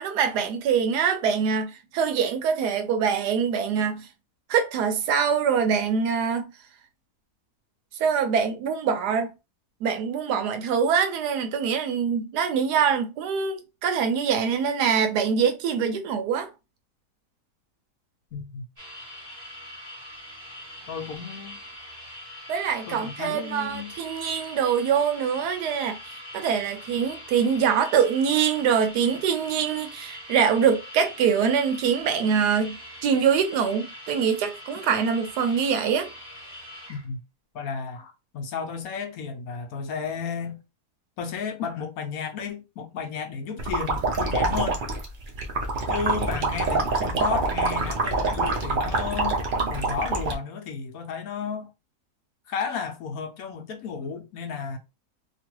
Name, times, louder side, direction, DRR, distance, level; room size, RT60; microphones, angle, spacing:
voice 1, 0.0-4.1 4.5-6.5 8.0-9.3 9.8-16.5 22.5-36.1, right 7 dB, 80° right, 1.2 m, -24 dB
voice 2, 18.3-18.6 20.9-21.6 22.9-23.9 36.9-37.2 37.5-40.6 41.2-44.8 45.9-49.4 49.7-51.7 52.5-54.8, left 6 dB, 70° left, 1.0 m, -33 dB
sound 1, 18.8-37.0, left 1 dB, 20° right, 0.7 m, -43 dB
sound 2, 43.6-50.3, right 3 dB, 65° right, 0.5 m, -26 dB
3.0 x 2.4 x 3.0 m
omnidirectional pair, 1.7 m